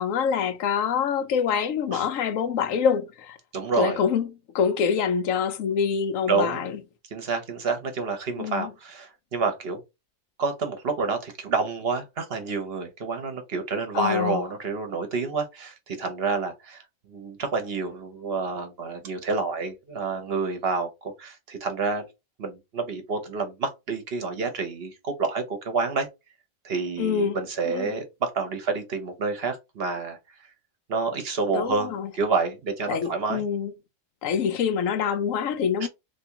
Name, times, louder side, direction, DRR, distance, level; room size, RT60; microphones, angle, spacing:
voice 1, 0.0-3.4 3.8-6.8 8.4-8.7 13.9-14.4 27.0-27.4 27.6-27.9 31.5-32.1 32.9-33.7 34.2-35.9, left 7 dB, 90° left, 1.1 m, -25 dB
voice 2, 3.5-4.0 6.3-6.7 7.1-9.8 10.4-16.8 17.1-22.0 22.4-26.1 26.6-30.2 30.9-33.4 35.8-35.9, right 4 dB, 55° right, 1.0 m, -28 dB
3.4 x 2.9 x 2.8 m
omnidirectional pair, 1.3 m